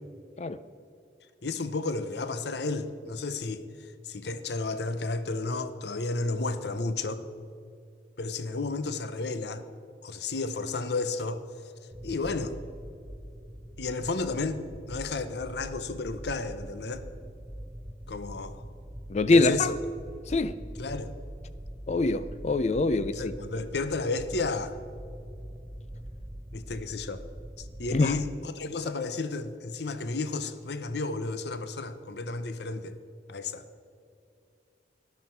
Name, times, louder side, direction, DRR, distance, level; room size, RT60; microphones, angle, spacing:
voice 1, 1.4-3.6 4.0-7.3 8.2-9.6 10.0-11.4 12.0-12.5 13.8-14.6 14.9-17.0 18.1-18.6 19.3-19.8 20.8-21.1 23.1-24.8 26.5-27.2 27.6-33.0 33.3-33.7, left 3 dB, 65° left, 0.7 m, -32 dB
sound 1, 11.9-28.3, equal, 15° right, 0.7 m, -43 dB
voice 2, 19.1-19.7 20.3-20.6 21.9-23.3 27.9-28.1, left 3 dB, 35° left, 0.4 m, -24 dB
13.0 x 11.5 x 4.5 m
head